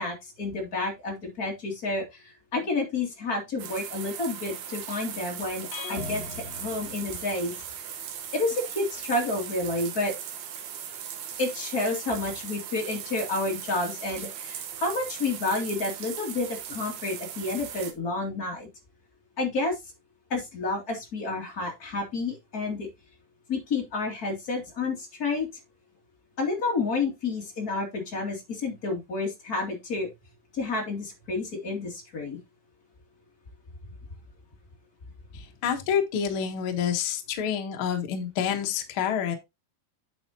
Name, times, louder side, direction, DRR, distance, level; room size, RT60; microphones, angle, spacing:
voice 1, 0.0-6.2 6.5-7.6 8.3-10.1 11.4-18.7 19.4-19.8 20.3-22.9 23.5-25.5 26.4-30.1 30.5-32.4, left 3 dB, 25° left, 2.3 m, -30 dB
sound 1, 3.6-17.9, right 9 dB, 75° right, 3.3 m, -38 dB
sound 2, 5.7-7.7, left 5 dB, 50° left, 2.6 m, -39 dB
voice 2, 35.6-39.3, left 8 dB, 80° left, 1.1 m, -27 dB
8.9 x 7.1 x 2.9 m
omnidirectional pair, 4.6 m